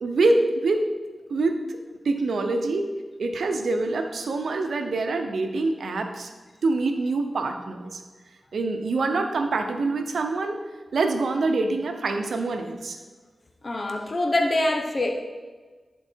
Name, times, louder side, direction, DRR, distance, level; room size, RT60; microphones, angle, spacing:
voice 1, 0.0-0.8 1.3-1.8 2.0-2.9 3.2-6.3 6.6-8.0 8.5-10.6 10.9-13.0, right 3 dB, 85° right, 5 dB, 0.8 m, -25 dB
voice 2, 13.6-15.1, left 1 dB, 45° left, 2 dB, 1.0 m, -24 dB
11.0 x 4.6 x 4.6 m, 1.4 s
cardioid pair, 65°, 0 cm